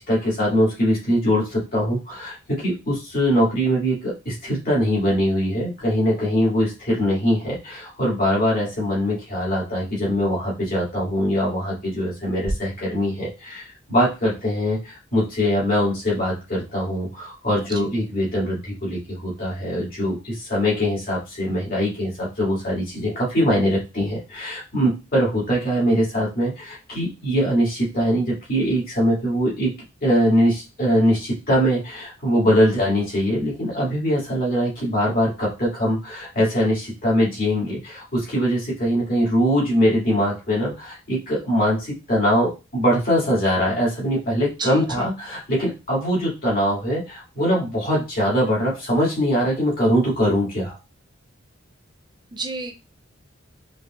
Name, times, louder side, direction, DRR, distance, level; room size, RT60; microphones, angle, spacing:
voice 1, 0.0-29.7 30.0-50.7, equal, 45° left, -6 dB, 2.6 m, -22 dB
voice 2, 44.6-45.1 52.3-52.7, right 3 dB, 20° right, 6 dB, 0.6 m, -31 dB
5.3 x 3.4 x 2.5 m, 0.28 s
head